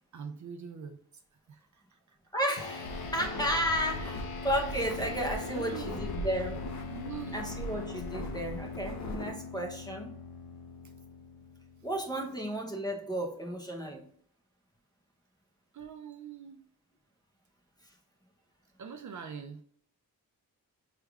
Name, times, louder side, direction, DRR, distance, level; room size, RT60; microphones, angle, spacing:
voice 1, 0.1-1.0 1.5-2.2 3.1-3.3 5.5-5.9 6.9-7.4 15.7-16.6 18.8-19.6, right 7 dB, 50° right, 7 dB, 0.4 m, -43 dB
voice 2, 2.3-6.6 7.3-10.1 11.8-14.1, equal, 10° left, 1 dB, 0.7 m, -33 dB
sound 1, 2.6-12.2, left 4 dB, 80° left, 0.8 m, -42 dB
sound 2, 2.8-9.3, equal, 50° left, 0.6 m, -40 dB
4.8 x 3.4 x 2.3 m, 0.62 s
wide cardioid pair, 150°, 37 cm